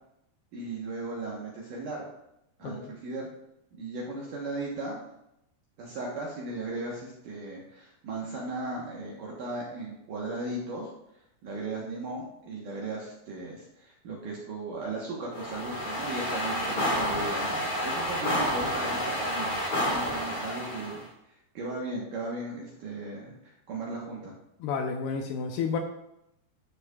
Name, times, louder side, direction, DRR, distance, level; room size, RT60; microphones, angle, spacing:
voice 1, 0.5-2.0 2.6-3.3 3.7-5.0 5.8-10.9 11.4-21.0 21.3-24.3, right 2 dB, 70° right, -3 dB, 2.1 m, -37 dB
voice 2, 2.6-2.9 24.6-25.8, left 5 dB, 80° left, 3 dB, 2.5 m, -31 dB
sound 1, 15.3-21.0, equal, 45° left, 1.7 m, -30 dB
12.5 x 6.4 x 2.4 m, 0.82 s
omnidirectional pair, 5.1 m